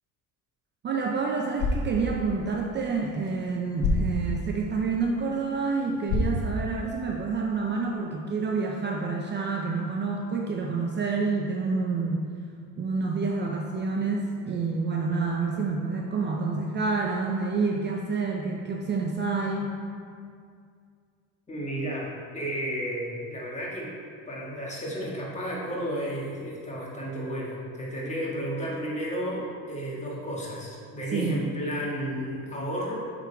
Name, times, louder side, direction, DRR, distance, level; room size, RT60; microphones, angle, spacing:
voice 1, 0.8-12.2 12.8-19.8 31.1-31.4, right 4 dB, 35° right, 0 dB, 0.5 m, -28 dB
sound 1, 1.4-7.4, left 1 dB, 60° left, 1.4 m, -32 dB
voice 2, 21.5-23.9 24.3-32.9, equal, 20° left, -5 dB, 1.6 m, -32 dB
7.1 x 3.9 x 4.6 m, 2.2 s
cardioid pair, 120°, 33 cm